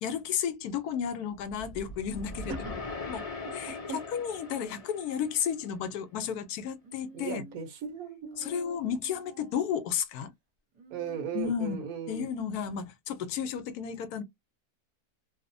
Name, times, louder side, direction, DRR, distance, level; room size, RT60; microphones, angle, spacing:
voice 1, 0.0-2.8 3.1-3.3 3.5-7.4 8.4-10.3 11.3-11.8 12.1-14.2, left 8 dB, 80° left, 1.1 m, -33 dB
sound 1, 1.4-5.8, left 3 dB, 55° left, 0.4 m, -40 dB
Human voice, 6.8-7.8 8.3-9.9 10.7-12.0, right 4 dB, 30° right, 0.8 m, -53 dB
voice 2, 7.1-8.9 10.9-12.3, right 7 dB, 70° right, 1.1 m, -37 dB
2.9 x 2.0 x 2.5 m
omnidirectional pair, 1.6 m